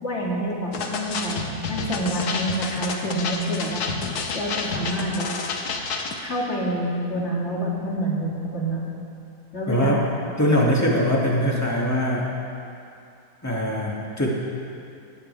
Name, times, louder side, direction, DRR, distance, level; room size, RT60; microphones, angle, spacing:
voice 1, 0.0-3.8 4.3-5.3 6.2-8.8 9.5-10.1, right 1 dB, 45° left, -4 dB, 2.8 m, -27 dB
sound 1, 0.7-6.2, left 4 dB, 75° left, 1.6 m, -30 dB
voice 2, 9.7-10.0 10.4-12.3 13.4-14.3, equal, 10° left, -4 dB, 2.1 m, -22 dB
17.5 x 15.5 x 3.4 m, 2.6 s
omnidirectional pair, 1.7 m